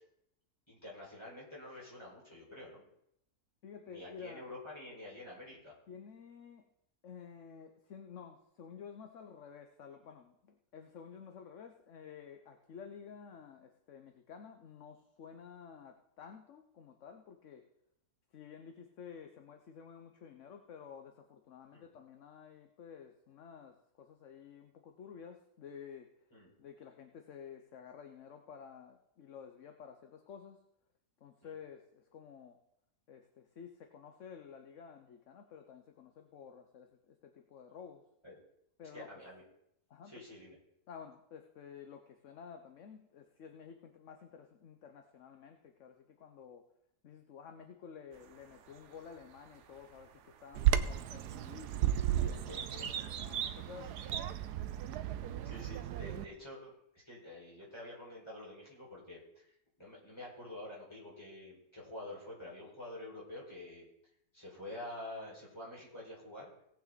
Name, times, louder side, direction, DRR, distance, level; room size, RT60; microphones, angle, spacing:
voice 1, 0.7-2.9 3.9-5.7 21.7-21.9 26.3-26.5 31.4-31.5 38.2-38.4 38.9-39.4 40.1-40.6 52.2-52.9 53.9-54.2 55.4-63.9 64.3-66.5, left 1 dB, 15° left, -6 dB, 5.4 m, -48 dB
voice 2, 3.6-4.4 5.9-6.6 7.0-17.6 18.3-26.1 26.6-30.6 31.2-32.6 33.1-38.1 38.8-39.1 39.9-40.2 40.9-46.7 47.0-54.0, left 7 dB, 55° left, 5 dB, 1.1 m, -52 dB
sound 1, 48.1-54.2, right 8 dB, 55° right, 0.9 m, -45 dB
Bird vocalization bird call bird song, 50.6-56.2, right 11 dB, 85° right, 1.2 m, -34 dB
18.0 x 8.3 x 4.1 m, 0.78 s
omnidirectional pair, 1.7 m